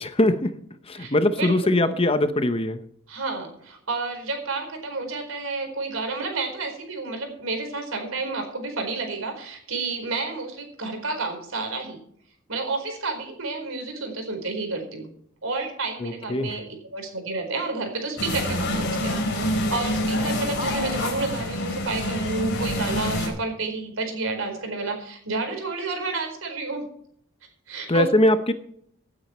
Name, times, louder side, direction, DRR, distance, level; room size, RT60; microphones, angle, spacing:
voice 1, 0.0-0.6 0.9-2.8 16.0-16.6 27.9-28.5, left 1 dB, 25° left, 0.9 m, -21 dB
voice 2, 0.9-1.9 3.1-12.0 12.5-15.1 15.4-26.9 27.7-28.1, right 3 dB, 70° right, 4.4 m, -30 dB
sound 1, 18.2-23.3, left 1 dB, 55° left, 4.1 m, -26 dB
17.0 x 9.2 x 4.3 m
head